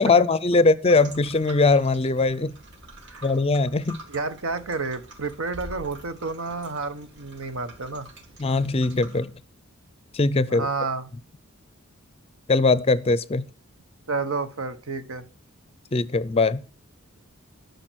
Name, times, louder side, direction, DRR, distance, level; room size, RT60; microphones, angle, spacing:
voice 1, 0.0-2.5 3.2-4.0 8.4-9.3 10.1-10.7 12.5-13.4 15.9-16.6, left 3 dB, 30° left, 0.5 m, -21 dB
sound 1, 0.9-9.2, right 1 dB, 60° right, 2.0 m, -46 dB
voice 2, 4.1-8.1 10.5-11.1 14.1-15.2, right 4 dB, 75° right, 1.1 m, -30 dB
12.0 x 6.7 x 6.2 m
head